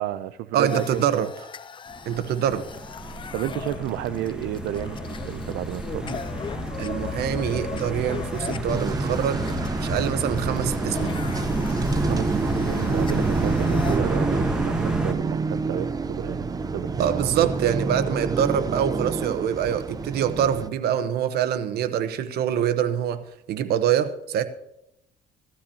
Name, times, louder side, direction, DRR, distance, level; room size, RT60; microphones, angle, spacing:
voice 1, 0.0-1.3 3.3-6.2 11.8-17.5, right 13 dB, 85° right, 12 dB, 0.5 m, -32 dB
voice 2, 0.5-1.3 2.1-2.6 6.8-9.4 9.8-11.1 17.0-24.4, right 9 dB, 70° right, 11 dB, 1.0 m, -25 dB
sound 1, 0.7-14.0, left 6 dB, 30° left, 0.5 m, -39 dB
sound 2, 1.9-15.1, right 1 dB, 5° right, 1.2 m, -30 dB
sound 3, 8.7-20.7, right 4 dB, 20° right, 0.6 m, -28 dB
17.0 x 12.5 x 2.8 m, 0.82 s
cardioid pair, 110°, 17 cm